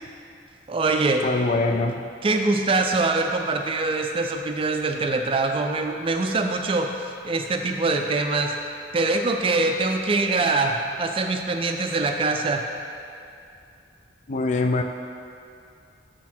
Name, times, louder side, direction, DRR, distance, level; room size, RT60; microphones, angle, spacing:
voice 1, 0.7-1.3 2.2-8.5 8.9-12.6, right 3 dB, 30° right, 4 dB, 0.4 m, -23 dB
voice 2, 1.2-2.0 14.3-14.8, left 3 dB, 40° left, 5 dB, 0.4 m, -23 dB
6.6 x 6.2 x 4.3 m, 2.5 s
head